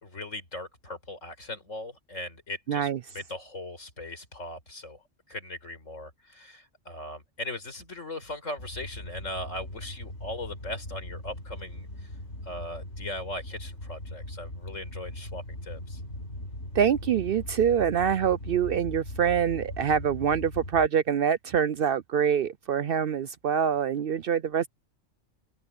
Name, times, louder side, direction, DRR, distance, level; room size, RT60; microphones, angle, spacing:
voice 1, 0.0-2.9 3.1-5.0 5.3-12.1 12.5-16.0, left 1 dB, 80° left, 5.3 m, -39 dB
voice 2, 2.7-3.0 16.7-24.7, right 8 dB, 60° right, 0.6 m, -25 dB
sound 1, 8.6-20.9, left 1 dB, 65° left, 6.1 m, -40 dB
open air
omnidirectional pair, 1.3 m